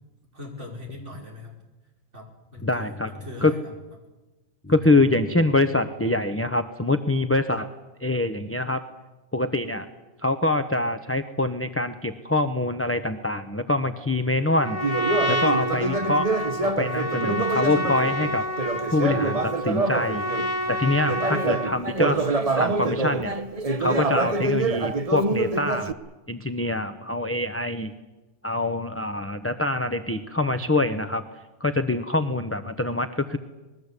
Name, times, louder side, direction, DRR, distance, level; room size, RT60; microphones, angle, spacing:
voice 1, 0.3-1.5 2.1-3.6 16.7-16.8 20.6-21.1, left 2 dB, 75° right, 0 dB, 5.8 m, -41 dB
voice 2, 2.6-3.1 3.4-3.5 4.6-7.7 8.0-8.8 9.3-9.9 10.2-14.8 15.3-16.3 16.6-20.3 20.7-23.4 23.8-25.9 26.3-27.9 28.4-31.2 31.6-33.4, left 2 dB, 10° left, 8 dB, 0.9 m, -25 dB
Trumpet, 14.5-21.8, equal, 70° left, 2.7 m, -29 dB
Conversation, 14.8-20.5 21.0-25.9, right 3 dB, 30° right, 1.0 m, -26 dB
26.0 x 21.0 x 8.3 m, 1.1 s
omnidirectional pair, 1.2 m